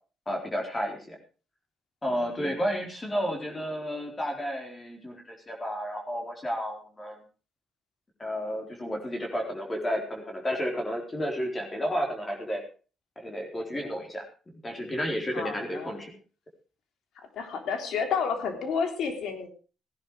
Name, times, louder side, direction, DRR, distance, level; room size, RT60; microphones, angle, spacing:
voice 1, 0.3-1.2 2.0-7.2 8.2-12.6 13.2-14.2 14.6-16.1, equal, 25° left, 2 dB, 4.1 m, -32 dB
voice 2, 2.1-2.6 15.3-16.2 17.1-19.5, left 6 dB, 75° left, 6 dB, 3.4 m, -31 dB
16.5 x 11.0 x 4.9 m, 0.37 s
cardioid pair, 90°, 0 cm